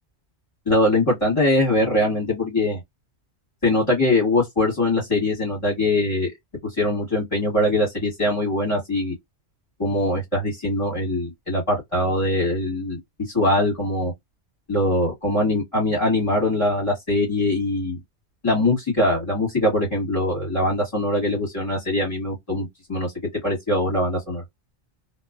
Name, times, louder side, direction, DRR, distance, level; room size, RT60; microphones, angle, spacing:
voice 1, 0.7-2.8 3.6-6.3 6.8-9.1 9.8-13.0 13.3-14.1 14.7-18.0 18.4-23.1 23.4-24.4, left 1 dB, 30° left, 1.3 m, -22 dB
2.4 x 2.3 x 2.3 m
omnidirectional pair, 1.2 m